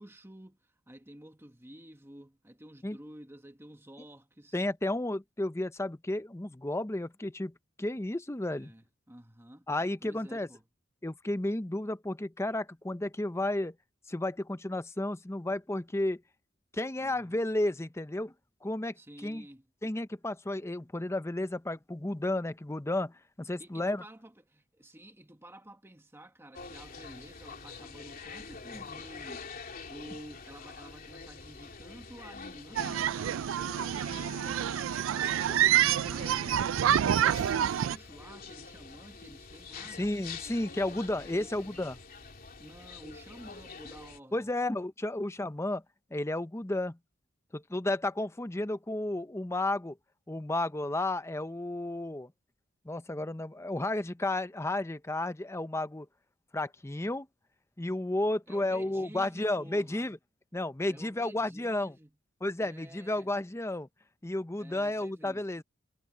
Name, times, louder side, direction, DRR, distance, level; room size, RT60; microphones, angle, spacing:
voice 1, 0.0-4.6 8.5-9.7 10.0-10.6 17.0-17.4 18.9-19.7 23.6-29.5 29.8-35.7 36.0-40.0 41.3-41.6 42.6-44.5 58.5-60.1 60.9-62.1 62.6-63.3 64.6-65.5, right 1 dB, 15° right, 1.5 m, -51 dB
voice 2, 4.5-7.5 7.8-8.7 9.7-10.5 11.0-13.7 14.1-16.2 16.7-18.3 18.6-18.9 19.2-19.4 19.8-24.0 40.0-42.0 44.3-45.8 46.1-47.0 47.5-50.0 50.3-52.3 52.8-56.1 56.5-57.3 57.8-60.2 60.5-61.9 62.4-63.9 64.2-65.6, left 1 dB, 15° left, 0.7 m, -32 dB
sound 1, 26.5-44.2, left 4 dB, 45° left, 3.1 m, -46 dB
sound 2, 32.8-38.0, right 10 dB, 85° right, 0.3 m, -27 dB
head